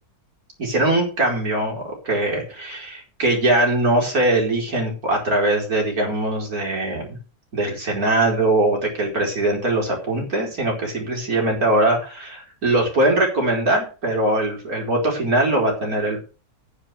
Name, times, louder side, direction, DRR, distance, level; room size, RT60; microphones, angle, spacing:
voice 1, 0.6-7.2 7.5-16.2, right 1 dB, 65° right, 0 dB, 5.2 m, -21 dB
9.9 x 7.9 x 6.9 m, 0.35 s
omnidirectional pair, 1.7 m